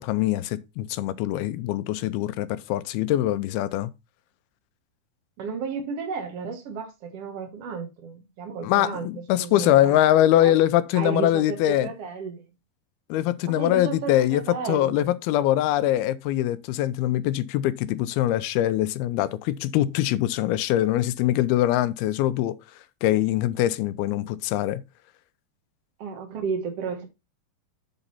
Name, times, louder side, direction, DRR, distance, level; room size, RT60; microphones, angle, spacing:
voice 1, 0.0-3.9 8.6-11.9 13.1-22.6 23.0-24.8, left 13 dB, 90° left, 2.6 m, -23 dB
voice 2, 5.4-10.0 10.4-10.6 10.9-12.5 13.4-15.1 26.0-27.1, right 5 dB, 65° right, 1.5 m, -33 dB
8.1 x 3.9 x 5.5 m
omnidirectional pair, 4.4 m